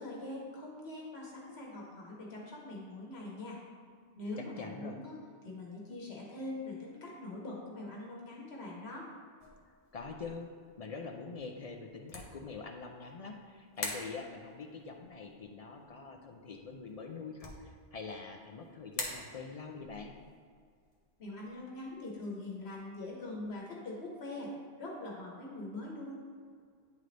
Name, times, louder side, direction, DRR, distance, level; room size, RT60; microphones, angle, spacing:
voice 1, 0.0-3.6 4.2-5.1 5.4-9.1 21.2-24.5 24.8-26.1, left 2 dB, 80° left, -3 dB, 1.3 m, -43 dB
voice 2, 4.4-5.0 9.9-20.1, left 4 dB, 50° left, 3 dB, 0.4 m, -44 dB
sound 1, 9.4-23.6, left 2 dB, 35° left, 0.9 m, -48 dB
9.5 x 3.9 x 3.3 m, 2.1 s
omnidirectional pair, 1.1 m